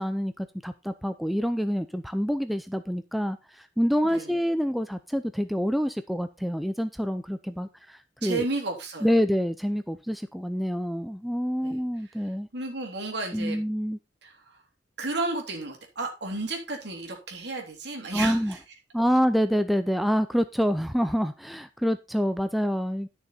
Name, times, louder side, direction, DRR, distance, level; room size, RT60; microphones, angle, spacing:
voice 1, 0.0-8.5 9.0-12.5 13.3-14.0 18.1-18.6 18.9-23.1, equal, ahead, 9 dB, 0.5 m, -27 dB
voice 2, 8.2-9.1 11.6-11.8 12.2-13.6 14.2-14.6 15.0-18.6, right 3 dB, 65° right, 2 dB, 3.3 m, -33 dB
11.5 x 6.6 x 4.2 m, 0.27 s
head